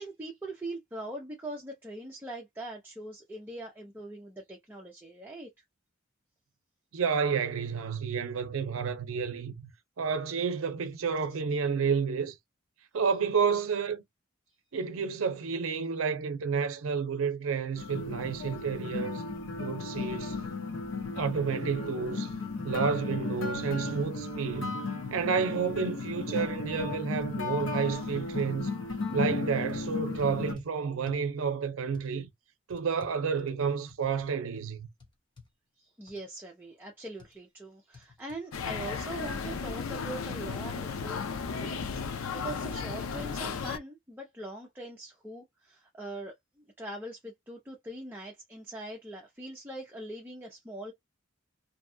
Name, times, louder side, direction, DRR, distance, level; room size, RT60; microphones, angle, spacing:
voice 1, 0.0-5.5 11.3-11.4 35.8-41.2 41.5-50.9, right 1 dB, 10° right, 0.5 m, -42 dB
voice 2, 6.9-9.7 10.0-12.4 12.9-14.0 14.7-19.2 19.6-20.4 21.1-24.8 25.1-28.7 29.1-32.3 32.7-34.9, right 6 dB, 85° right, 0.5 m, -30 dB
sound 1, 17.8-30.5, left 3 dB, 65° left, 0.8 m, -35 dB
sound 2, 26.7-26.8 27.1-27.2 27.7-28.5 29.1-29.3 29.6-30.7 31.1-31.3 31.9-32.1 32.7-34.3 34.6-34.7 35.0-35.5 36.1-36.2 37.2-37.4 37.9-38.4 38.8-40.2 40.5-40.6 41.1-41.2 41.8-42.3 42.5-42.7 43.2-43.3, left 4 dB, 20° left, 0.8 m, -53 dB
sound 3, 38.5-43.8, left 5 dB, 90° left, 0.4 m, -35 dB
2.7 x 2.2 x 2.6 m
head